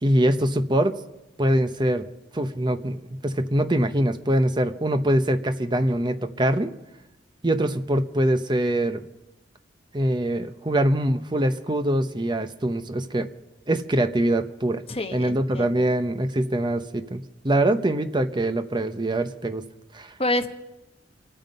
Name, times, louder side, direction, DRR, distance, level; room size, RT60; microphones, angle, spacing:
voice 1, 0.0-0.9 1.4-2.0 2.3-6.7 7.4-9.1 9.9-13.3 13.7-14.8 15.1-19.6 19.9-20.1, right 1 dB, 25° right, 8 dB, 0.8 m, -23 dB
voice 2, 14.9-15.8 20.2-20.5, left 1 dB, 30° left, 5 dB, 1.1 m, -27 dB
26.0 x 9.3 x 5.5 m, 0.94 s
head